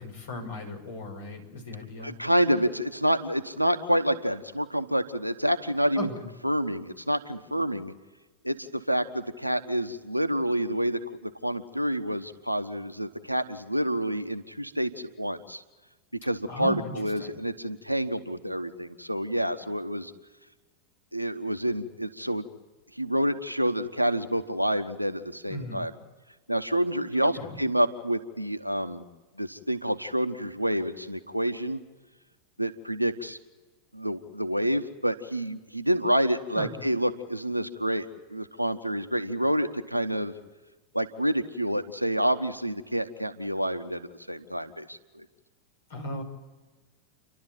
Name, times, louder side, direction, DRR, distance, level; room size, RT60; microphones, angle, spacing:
voice 1, 0.0-2.1 6.0-6.2 16.5-16.9 17.2-17.4 25.5-25.8 27.2-27.6 36.5-36.7 45.9-46.2, left 1 dB, 60° left, 3 dB, 5.8 m, -36 dB
voice 2, 2.0-6.1 6.4-7.9 8.4-15.6 16.2-20.1 21.1-22.5 23.0-25.9 26.5-27.3 27.6-29.0 29.4-31.8 32.6-33.4 33.9-40.3 40.9-45.2, equal, 90° right, 8 dB, 1.2 m, -28 dB
30.0 x 12.0 x 9.1 m, 1.2 s
figure-of-eight pair, 90°, 0 cm